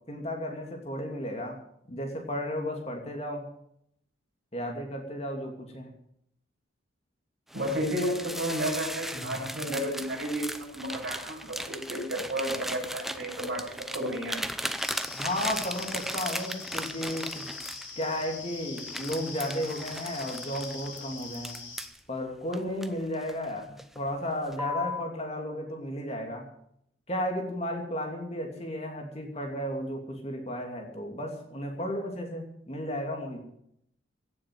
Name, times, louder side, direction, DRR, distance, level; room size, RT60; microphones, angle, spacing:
voice 1, 0.1-1.6 1.9-3.5 4.5-5.9 15.1-17.4 18.0-21.6 22.1-26.5 27.1-33.4, left 1 dB, 30° left, 2 dB, 2.7 m, -34 dB
sound 1, 7.5-18.3 18.8-22.0 22.5-23.4 23.8-24.1 24.5-25.1, equal, ahead, 0.7 m, -37 dB
voice 2, 7.5-10.4 10.7-14.4, equal, 55° right, -2 dB, 7.0 m, -32 dB
sound 2, 14.8-21.9, left 5 dB, 80° left, 5.0 m, -43 dB
17.0 x 7.5 x 9.5 m, 0.72 s
head